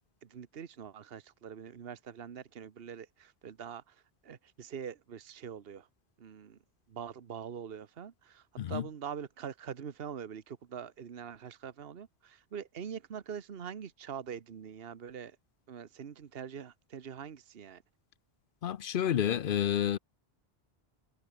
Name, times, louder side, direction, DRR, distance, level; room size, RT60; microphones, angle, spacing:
voice 1, 0.2-3.8 4.2-5.9 6.2-6.6 6.9-15.4 15.7-17.8, right 7 dB, 70° right, 1.2 m, -44 dB
voice 2, 18.6-20.0, left 10 dB, 60° left, 0.7 m, -29 dB
omnidirectional pair, 1.1 m